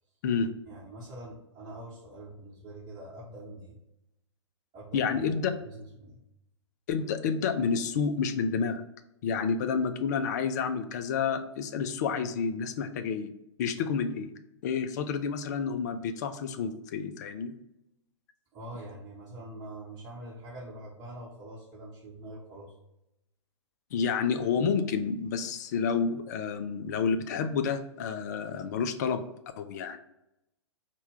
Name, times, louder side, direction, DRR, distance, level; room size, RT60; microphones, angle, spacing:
voice 1, 0.6-3.8 4.7-6.2 18.5-22.7, right 1 dB, 20° right, -8 dB, 0.9 m, -44 dB
voice 2, 4.9-5.5 6.9-8.8 9.2-13.3 13.6-14.3 14.6-17.5 23.9-29.2 29.6-30.0, left 6 dB, 35° left, 9 dB, 0.4 m, -29 dB
4.2 x 2.2 x 3.5 m, 0.86 s
figure-of-eight pair, 115°, 16 cm